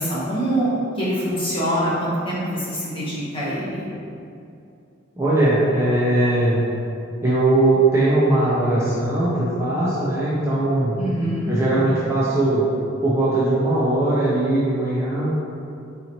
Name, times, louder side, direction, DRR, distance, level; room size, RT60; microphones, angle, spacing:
voice 1, 0.0-3.9 11.0-11.6, right 1 dB, 25° left, -9 dB, 0.9 m, -24 dB
voice 2, 5.2-6.6 7.2-10.9 11.5-12.7 13.0-15.4, right 2 dB, 15° right, -9 dB, 0.4 m, -20 dB
3.8 x 2.9 x 2.8 m, 2.6 s
head